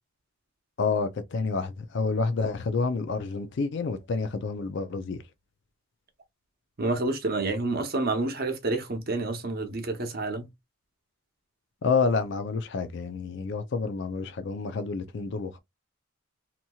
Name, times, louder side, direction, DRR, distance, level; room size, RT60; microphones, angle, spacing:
voice 1, 0.8-5.2 11.8-15.6, left 4 dB, 60° left, 0.4 m, -29 dB
voice 2, 6.8-10.5, right 2 dB, 50° right, 0.7 m, -29 dB
2.9 x 2.7 x 2.3 m
head